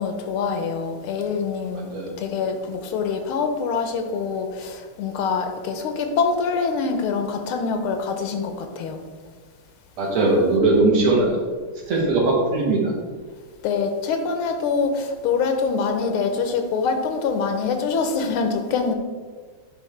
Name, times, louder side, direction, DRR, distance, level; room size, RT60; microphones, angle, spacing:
voice 1, 0.0-1.9 2.2-9.0 13.6-18.9, left 5 dB, 90° left, 6 dB, 1.6 m, -25 dB
voice 2, 10.0-11.3 11.9-12.9, right 2 dB, 85° right, -2 dB, 2.3 m, -19 dB
10.5 x 3.5 x 3.2 m, 1.5 s
omnidirectional pair, 2.3 m